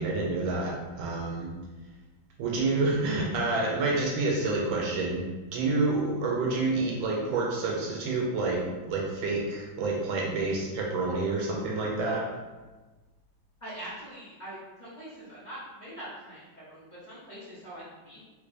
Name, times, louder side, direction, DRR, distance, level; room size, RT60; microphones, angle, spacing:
voice 1, 0.0-1.5 2.4-5.2 5.5-12.3, right 3 dB, 80° right, -2 dB, 1.3 m, -28 dB
voice 2, 13.6-18.2, right 1 dB, 45° left, -11 dB, 0.5 m, -43 dB
3.3 x 3.2 x 2.5 m, 1.2 s
omnidirectional pair, 2.2 m